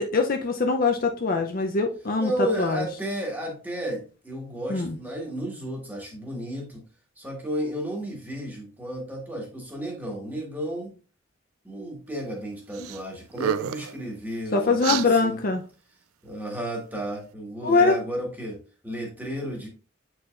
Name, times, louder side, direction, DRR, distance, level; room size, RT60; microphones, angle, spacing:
voice 1, 0.0-2.3 2.6-2.9 4.7-5.0 14.5-15.6 17.6-18.0, left 3 dB, 45° left, 3 dB, 0.6 m, -23 dB
voice 2, 2.2-6.8 7.2-10.9 11.6-15.4 16.2-19.7, right 1 dB, 10° right, -1 dB, 1.7 m, -33 dB
sound 1, 12.7-13.0 13.3-13.9 14.8-15.1, right 10 dB, 90° right, 0.4 m, -29 dB
8.1 x 4.8 x 2.5 m, 0.36 s
head